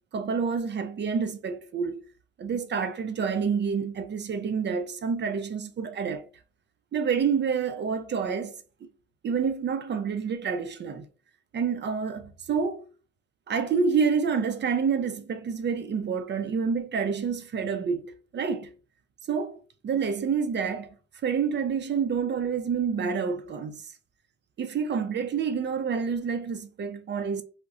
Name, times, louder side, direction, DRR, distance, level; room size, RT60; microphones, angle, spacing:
voice 1, 0.1-2.0 2.4-6.2 6.9-8.5 9.2-11.1 11.5-12.9 13.5-18.7 19.3-19.6 19.8-20.9 21.2-23.8 24.6-27.4, right 6 dB, 35° right, 0.5 m, -28 dB
2.4 x 2.1 x 3.8 m
cardioid pair, 90°, 30 cm